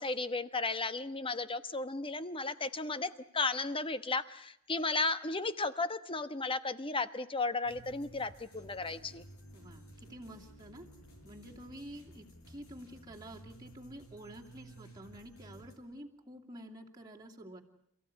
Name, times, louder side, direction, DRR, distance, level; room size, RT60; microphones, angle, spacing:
voice 1, 0.0-9.2, left 3 dB, 25° left, 12 dB, 1.1 m, -34 dB
sound 1, 7.6-15.8, right 1 dB, 70° left, 7.2 m, -54 dB
voice 2, 9.5-10.9 11.2-17.6, equal, 20° right, -1 dB, 2.8 m, -49 dB
29.0 x 15.5 x 9.7 m, 0.75 s
head